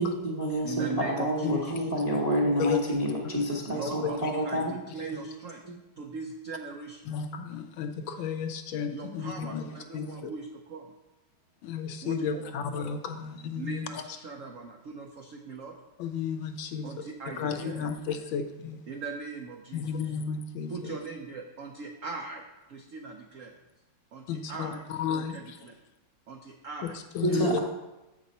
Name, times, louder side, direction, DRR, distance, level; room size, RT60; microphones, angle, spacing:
voice 1, 0.0-4.7 27.2-27.6, equal, 35° right, -2 dB, 0.6 m, -28 dB
voice 2, 0.6-1.9 3.7-5.6 6.0-7.0 8.9-10.9 12.0-12.5 13.6-15.7 16.8-17.9 18.9-20.1 20.7-23.5 24.1-25.7 26.3-27.0 27.3-27.6, right 4 dB, 75° right, 2 dB, 0.7 m, -40 dB
voice 3, 1.4-1.8 2.6-2.8 4.0-4.1 7.1-9.6 9.9-10.3 11.6-14.0 16.0-17.1 17.4-18.8 19.7-21.0 24.3-25.6 26.8-27.6, left 7 dB, 75° left, 7 dB, 1.3 m, -33 dB
7.7 x 5.9 x 4.1 m, 1.0 s
omnidirectional pair, 2.3 m